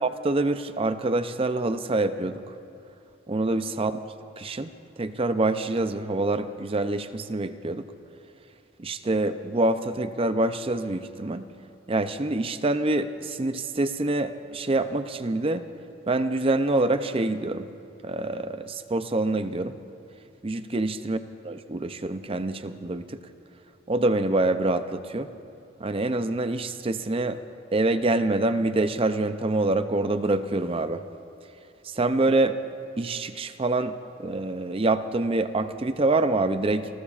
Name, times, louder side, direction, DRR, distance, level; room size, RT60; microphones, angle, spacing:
voice 1, 0.0-2.4 3.3-3.9 4.4-4.7 5.0-7.9 8.8-11.5 11.9-15.6 16.1-17.7 18.0-19.7 20.4-21.2 21.4-23.2 23.9-25.3 25.8-27.4 27.7-31.0 31.9-32.6 33.0-33.9 34.2-36.9, right 2 dB, 25° right, 10 dB, 0.5 m, -26 dB
28.0 x 20.0 x 2.5 m, 2.7 s
head